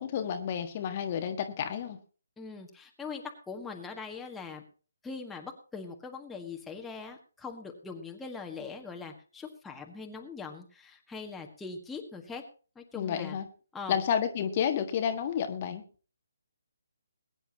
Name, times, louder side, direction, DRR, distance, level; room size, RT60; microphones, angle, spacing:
voice 1, 0.0-2.0 12.9-13.4 13.9-15.8, left 8 dB, 30° left, 6 dB, 1.5 m, -30 dB
voice 2, 2.4-4.6 5.0-12.4 12.7-13.4 13.7-14.0, left 4 dB, 5° left, 2 dB, 1.6 m, -41 dB
21.5 x 10.0 x 2.9 m, 0.38 s
figure-of-eight pair, 140°, 0 cm